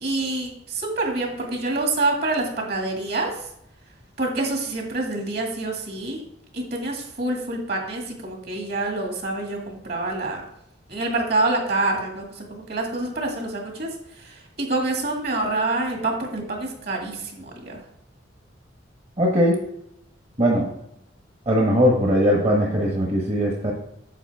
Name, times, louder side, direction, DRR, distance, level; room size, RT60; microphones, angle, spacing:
voice 1, 0.0-3.3 4.2-6.2 6.5-10.4 10.9-17.8, right 2 dB, 55° right, 1 dB, 2.1 m, -27 dB
voice 2, 19.2-19.6 20.4-20.7 21.5-23.7, equal, 35° right, -1 dB, 1.1 m, -20 dB
9.0 x 6.9 x 3.5 m, 0.79 s
head